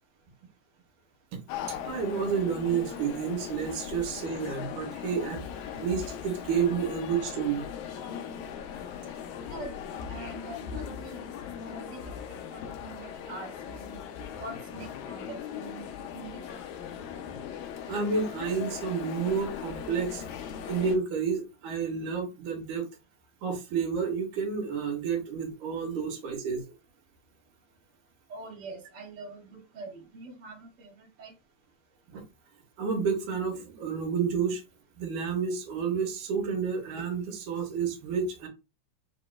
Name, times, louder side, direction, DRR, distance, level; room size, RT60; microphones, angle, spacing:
sound 1, 1.5-21.0, left 8 dB, 75° left, 2.0 m, -39 dB
voice 1, 1.7-5.4 5.8-7.7 17.9-20.2 20.7-22.9 23.4-26.6 32.1-32.2 32.8-34.6 35.0-38.5, right 6 dB, 80° right, 2.4 m, -30 dB
voice 2, 9.5-11.2 11.7-12.1 12.5-14.0 14.3-16.4 28.3-31.3, right 3 dB, 35° right, 1.5 m, -44 dB
6.6 x 3.0 x 2.4 m
omnidirectional pair, 3.5 m